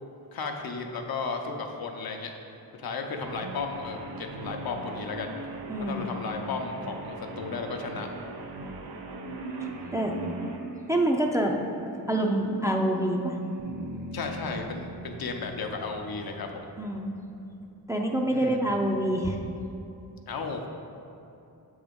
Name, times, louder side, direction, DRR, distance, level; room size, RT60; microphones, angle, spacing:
voice 1, 0.3-2.3 2.8-5.3 5.8-8.1 14.1-16.6 18.3-18.6 20.3-20.6, left 4 dB, 70° left, 3 dB, 0.7 m, -34 dB
Guitar, 3.2-10.6, right 2 dB, 85° right, 0.6 m, -40 dB
voice 2, 5.7-6.1 9.9-10.1 10.9-11.6 12.1-13.4 16.8-17.1 17.9-19.4, right 1 dB, 10° right, 1 dB, 0.4 m, -26 dB
sound 1, 9.1-14.2, right 4 dB, 50° right, 0.8 m, -42 dB
sound 2, 13.6-17.6, right 1 dB, 70° right, 1.4 m, -43 dB
6.9 x 3.5 x 5.1 m, 2.8 s
wide cardioid pair, 120°, 37 cm